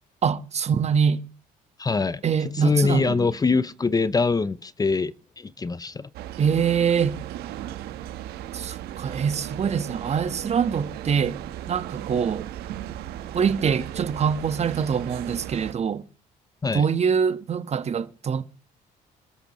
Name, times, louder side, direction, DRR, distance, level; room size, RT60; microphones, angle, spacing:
voice 1, 0.2-1.2 2.2-3.3 6.4-7.2 8.5-11.4 11.7-12.5 13.3-16.0 16.7-18.4, right 7 dB, 45° right, 1.5 m, -24 dB
voice 2, 1.8-2.2 2.5-6.1 16.6-16.8, left 4 dB, 25° left, 0.8 m, -24 dB
sound 1, 6.1-15.7, right 12 dB, 85° right, 1.5 m, -36 dB
27.5 x 13.0 x 3.2 m
cardioid pair, 90°, 16 cm